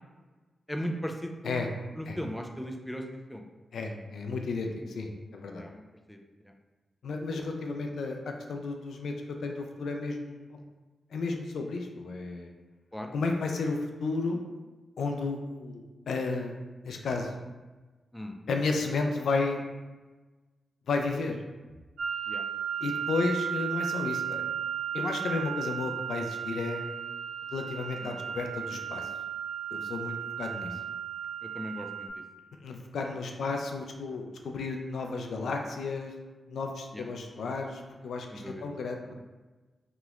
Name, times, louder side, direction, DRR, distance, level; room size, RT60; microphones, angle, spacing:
voice 1, 0.7-3.4 5.6-5.8 6.1-6.2 12.9-13.1 18.1-18.4 22.3-22.4 28.0-28.2 31.4-32.1 36.9-37.0 38.3-38.7, equal, 5° left, 3 dB, 0.4 m, -37 dB
voice 2, 3.7-5.6 7.0-9.1 9.4-10.6 11.1-12.5 13.1-14.5 15.0-16.6 16.8-17.4 18.5-19.6 20.9-21.4 22.8-24.4 24.9-26.8 27.5-29.1 29.7-30.8 32.6-36.1 36.5-38.3 38.6-39.1, left 3 dB, 80° left, 3 dB, 0.3 m, -32 dB
sound 1, 22.0-32.1, right 9 dB, 85° right, 0.3 m, -35 dB
3.0 x 2.9 x 2.4 m, 1.2 s
cardioid pair, 55°, 0 cm